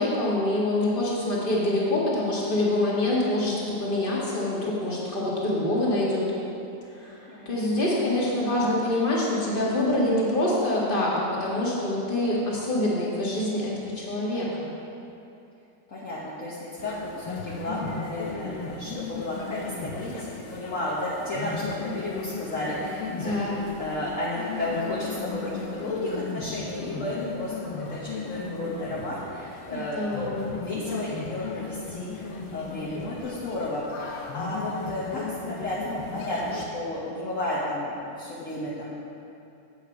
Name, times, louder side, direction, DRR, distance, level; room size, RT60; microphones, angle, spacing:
voice 1, 0.0-6.3 6.9-14.7 23.1-23.6 29.7-30.6, left 1 dB, 30° left, -5 dB, 1.8 m, -26 dB
voice 2, 7.3-7.8 8.2-8.8 15.9-38.9, left 1 dB, 50° left, -7 dB, 1.4 m, -33 dB
sound 1, 16.8-36.7, left 4 dB, 85° left, 1.5 m, -37 dB
8.3 x 7.6 x 4.7 m, 2.7 s
omnidirectional pair, 2.0 m